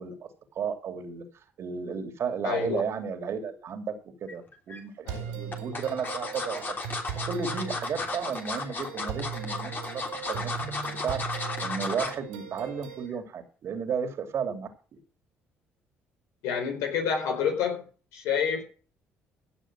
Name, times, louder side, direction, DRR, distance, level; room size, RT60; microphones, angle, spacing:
voice 1, 0.0-3.9 4.2-6.8 7.2-10.0 10.3-10.5 10.8-11.2 11.6-15.0, right 6 dB, 60° right, 7 dB, 3.0 m, -33 dB
voice 2, 2.4-2.8 5.1-5.3 16.4-17.9 18.1-18.6, left 7 dB, 80° left, 3 dB, 4.3 m, -28 dB
sound 1, 4.3-4.8 5.5-12.2 12.6-12.8 13.1-13.2, left 3 dB, 40° left, 3.1 m, -34 dB
sound 2, 5.1-13.1, right 8 dB, 85° right, 4.0 m, -39 dB
16.0 x 6.3 x 6.2 m, 0.38 s
hypercardioid pair, 60°, 5 cm